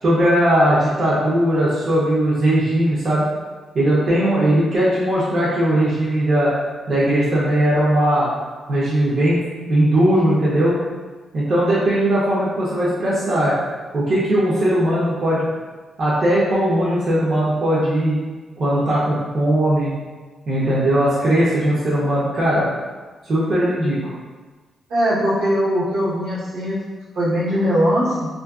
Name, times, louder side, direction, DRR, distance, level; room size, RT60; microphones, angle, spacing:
voice 1, 0.0-3.3 3.7-6.5 6.9-8.3 8.7-10.8 11.3-13.5 13.9-15.5 16.0-18.2 18.6-19.9 20.5-22.7 23.2-24.1, right 1 dB, 55° right, -8 dB, 0.6 m, -18 dB
voice 2, 24.9-26.8 27.1-28.3, equal, 90° right, -9 dB, 0.9 m, -20 dB
2.4 x 2.2 x 2.3 m, 1.3 s
cardioid pair, 75°, 0 cm